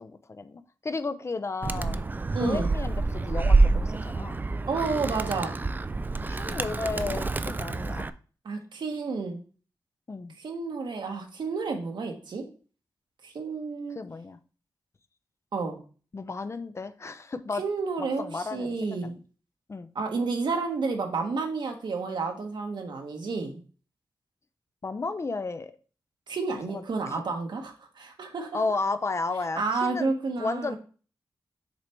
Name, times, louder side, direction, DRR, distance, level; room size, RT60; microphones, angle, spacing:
voice 1, 0.0-2.0 2.4-4.4 6.3-8.2 10.1-10.3 13.9-14.4 16.1-17.6 18.0-19.2 19.7-19.9 24.8-25.7 26.6-27.2 28.5-30.1 30.4-30.8, left 3 dB, 35° left, 11 dB, 0.5 m, -33 dB
Animal, 1.6-8.1, right 3 dB, 25° right, 0.3 m, -27 dB
voice 2, 2.3-2.7 4.7-5.6 8.4-9.4 10.4-12.4 13.2-14.0 15.5-15.8 17.5-19.2 19.9-23.6 26.3-28.6 29.6-30.8, right 4 dB, 75° right, 3 dB, 1.2 m, -30 dB
6.7 x 3.2 x 4.5 m, 0.39 s
wide cardioid pair, 90°, 8 cm